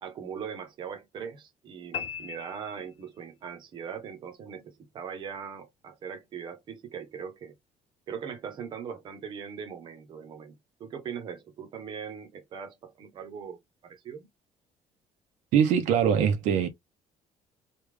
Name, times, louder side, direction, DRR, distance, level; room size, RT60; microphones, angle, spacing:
voice 1, 0.0-7.5 8.1-14.3, right 7 dB, 40° right, 0.7 m, -40 dB
sound 1, 1.9-3.5, left 8 dB, 50° left, 0.5 m, -39 dB
voice 2, 15.5-16.7, right 8 dB, 80° right, 0.6 m, -22 dB
3.2 x 2.3 x 3.3 m
cardioid pair, 175°, 13 cm